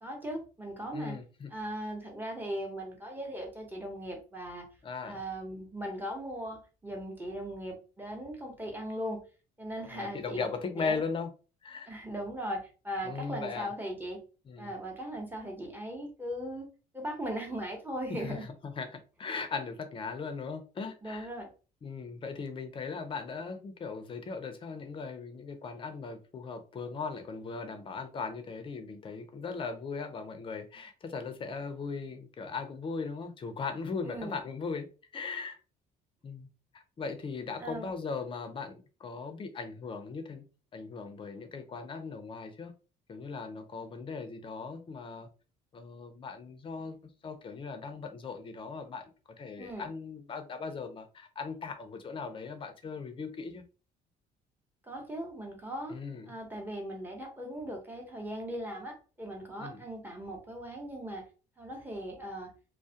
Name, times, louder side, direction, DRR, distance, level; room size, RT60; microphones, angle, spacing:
voice 1, 0.0-1.2 1.5-4.7 5.0-9.2 9.6-10.5 10.8-11.0 11.9-14.2 14.6-16.7 16.9-18.4 21.0-21.5 34.0-34.3 37.6-37.9 49.6-49.9 54.8-55.9 56.3-61.2 61.6-62.5, right 1 dB, 10° right, 0.9 m, -38 dB
voice 2, 0.9-1.5 4.8-5.2 9.9-11.3 11.6-12.0 13.0-13.7 14.4-14.7 18.2-21.3 21.8-34.9 35.1-35.6 36.2-36.5 36.7-40.4 40.7-42.7 43.1-45.3 45.7-47.0 47.2-53.6 55.9-56.4 59.6-59.8, left 4 dB, 30° left, 0.5 m, -38 dB
2.3 x 2.1 x 2.7 m
cardioid pair, 110°, 17 cm